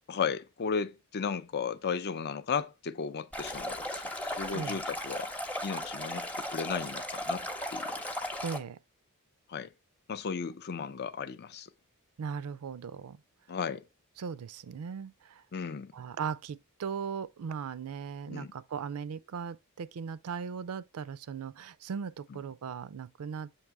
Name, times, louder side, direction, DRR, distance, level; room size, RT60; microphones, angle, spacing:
voice 1, 0.1-5.3 5.6-7.5 7.7-8.0 9.5-9.7 10.1-11.7 13.5-13.8 15.5-15.9 18.3-18.5 22.3-22.4, left 6 dB, 50° left, 0.5 m, -35 dB
Stream, 3.3-8.6, left 1 dB, 5° left, 0.7 m, -36 dB
voice 2, 4.5-4.8 8.4-8.8 12.2-13.2 14.2-15.4 15.9-23.5, right 6 dB, 75° right, 0.4 m, -38 dB
7.2 x 2.9 x 4.6 m
head